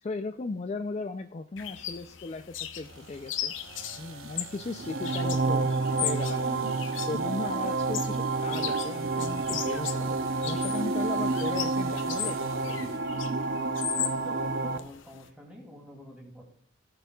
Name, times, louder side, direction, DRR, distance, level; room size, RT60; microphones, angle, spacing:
voice 1, 0.0-3.5 4.0-5.7 6.0-6.7 7.1-10.2 10.4-13.0, left 3 dB, 30° left, 8 dB, 0.4 m, -37 dB
sound 1, 1.6-15.3, left 11 dB, 65° left, 0.7 m, -38 dB
sound 2, 2.8-13.1, right 5 dB, 80° right, 1.0 m, -46 dB
sound 3, 4.8-14.8, right 3 dB, 55° right, 0.6 m, -29 dB
voice 2, 14.0-16.4, left 1 dB, 5° right, -2 dB, 2.6 m, -47 dB
16.5 x 6.8 x 2.3 m, 0.62 s
head